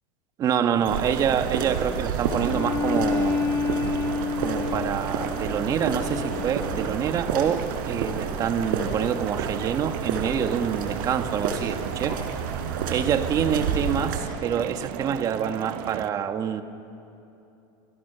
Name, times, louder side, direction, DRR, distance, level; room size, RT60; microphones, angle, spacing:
voice 1, 0.4-3.7 4.4-12.2 12.9-16.6, right 8 dB, 35° right, 8 dB, 1.5 m, -26 dB
sound 1, 0.8-16.1, right 14 dB, 55° right, 0.9 m, -37 dB
sound 2, 0.9-14.2, right 5 dB, 85° right, 4.6 m, -30 dB
Bowed string instrument, 2.3-7.0, left 5 dB, 25° left, 1.7 m, -29 dB
29.0 x 28.5 x 6.9 m, 2.9 s
supercardioid pair, 145°, 11 cm